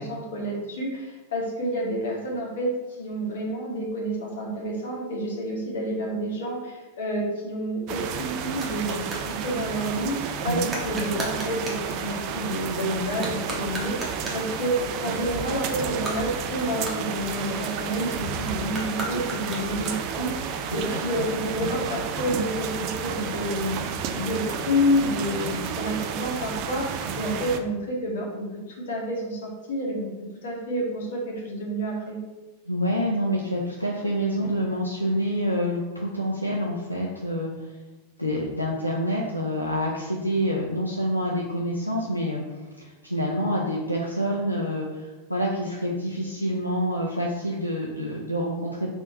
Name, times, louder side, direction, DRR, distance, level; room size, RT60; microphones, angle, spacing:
voice 1, 0.0-2.7 3.0-23.8 24.1-28.5 28.8-30.1 30.4-32.2, equal, 60° left, -2 dB, 1.1 m, -29 dB
sound 1, 7.7-9.3 10.7-11.9 13.1-14.5 15.9-17.7 18.7-20.3, right 1 dB, 15° right, 1.0 m, -36 dB
sound 2, 7.9-27.6, right 6 dB, 40° right, 0.3 m, -31 dB
voice 2, 32.7-37.6 38.2-48.9, equal, 90° left, -3 dB, 0.5 m, -27 dB
3.6 x 2.6 x 3.9 m, 1.1 s
figure-of-eight pair, 90°, 0 cm